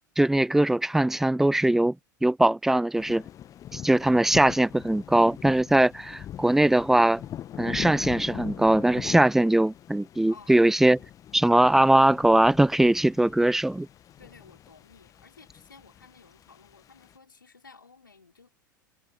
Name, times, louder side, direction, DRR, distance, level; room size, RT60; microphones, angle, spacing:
voice 1, 0.2-2.0 2.2-3.2 3.7-7.2 7.6-11.0 11.3-13.9, right 1 dB, 5° right, 0.3 m, -21 dB
sound 1, 3.0-17.2, left 11 dB, 30° left, 1.4 m, -41 dB
voice 2, 10.3-10.9 14.2-18.5, left 4 dB, 80° left, 4.9 m, -53 dB
figure-of-eight pair, 85°, 11 cm